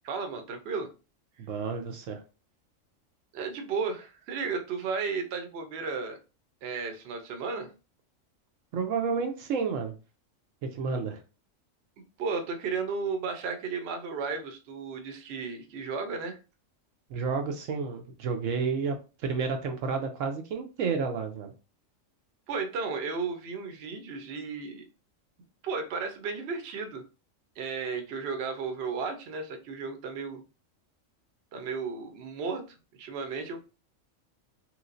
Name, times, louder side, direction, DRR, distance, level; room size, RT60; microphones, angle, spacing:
voice 1, 0.0-0.9 3.3-6.2 6.6-7.7 12.2-16.4 22.5-24.8 25.6-27.1 27.6-30.4 31.5-32.6 33.0-33.6, right 5 dB, 60° right, 5 dB, 0.8 m, -34 dB
voice 2, 1.4-2.2 8.7-9.9 10.6-11.2 17.1-21.5, right 5 dB, 80° right, 4 dB, 1.0 m, -31 dB
3.1 x 3.1 x 2.5 m, 0.31 s
omnidirectional pair, 1.3 m